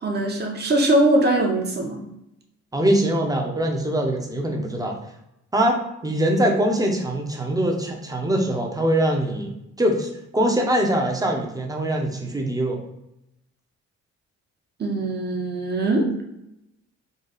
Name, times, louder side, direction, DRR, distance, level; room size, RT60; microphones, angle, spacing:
voice 1, 0.0-2.0 14.8-16.3, right 1 dB, 35° right, 1 dB, 1.0 m, -21 dB
voice 2, 2.7-5.0 5.5-9.5 9.8-12.8, right 1 dB, 10° right, 1 dB, 0.8 m, -23 dB
4.0 x 2.3 x 3.9 m, 0.84 s
cardioid pair, 90°, 30 cm